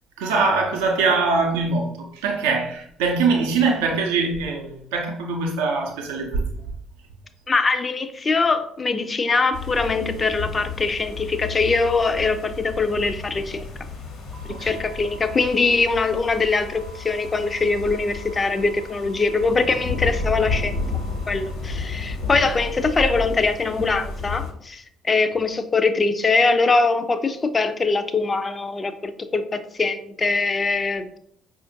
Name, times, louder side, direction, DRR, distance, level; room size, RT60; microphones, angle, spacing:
voice 1, 0.2-6.5 14.5-14.8, right 4 dB, 75° right, 0.5 m, -23 dB
voice 2, 7.5-13.7 14.6-20.8 21.3-31.2, left 4 dB, 30° left, 0.4 m, -22 dB
sound 1, 9.5-24.5, left 4 dB, 65° left, 1.1 m, -32 dB
sound 2, 14.3-21.5, right 3 dB, 25° right, 0.4 m, -47 dB
4.9 x 2.5 x 2.6 m
hypercardioid pair, 55°, 0 cm